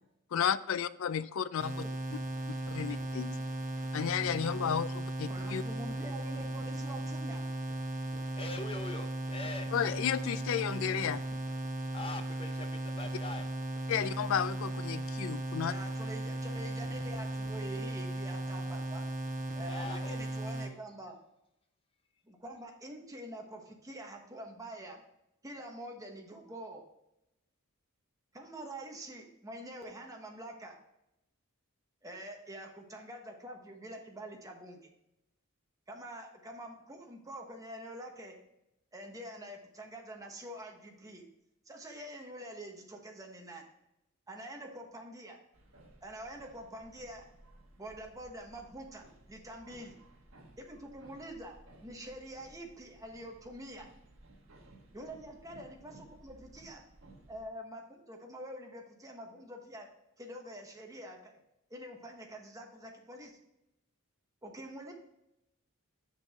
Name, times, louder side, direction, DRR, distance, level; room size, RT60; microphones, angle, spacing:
voice 1, 0.3-1.8 2.7-3.4 3.9-5.6 9.7-11.2 13.9-15.7, left 8 dB, 65° left, 15 dB, 0.4 m, -32 dB
sound 1, 1.6-20.7, right 1 dB, 35° right, 1.2 m, -37 dB
voice 2, 5.3-7.5 15.6-19.0 19.5-21.1 22.2-25.0 25.4-26.8 28.3-30.8 32.0-34.9 35.9-38.4 38.9-41.2 41.6-43.7 44.3-45.4 46.0-47.2 47.8-50.0 50.6-53.9 54.9-56.8 57.3-59.9 60.2-61.4 61.7-63.4 64.4-64.9, right 1 dB, 15° right, 2 dB, 1.1 m, -46 dB
voice 3, 8.4-9.7 11.9-13.4 19.7-20.2, left 3 dB, 25° left, 7 dB, 0.6 m, -42 dB
sound 2, 45.5-57.5, right 1 dB, 60° right, 1.5 m, -58 dB
6.5 x 6.2 x 3.5 m, 0.86 s
head